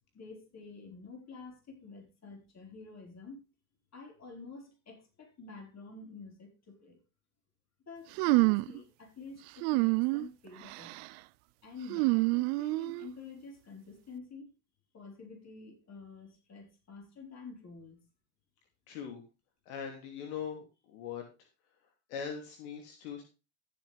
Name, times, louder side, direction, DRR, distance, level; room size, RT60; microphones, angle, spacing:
voice 1, 0.1-3.5 3.9-7.0 7.9-11.1 11.6-14.5 14.9-18.1, left 4 dB, 35° left, 2 dB, 4.9 m, -49 dB
sound 1, 8.2-8.8 9.6-10.3 10.7-11.1 11.9-13.1, right 27 dB, 75° right, 0.5 m, -27 dB
voice 2, 18.9-19.2 19.7-21.2 22.1-23.2, left 7 dB, 80° left, 3 dB, 2.9 m, -41 dB
14.0 x 7.6 x 3.5 m, 0.30 s
supercardioid pair, 95°, 46 cm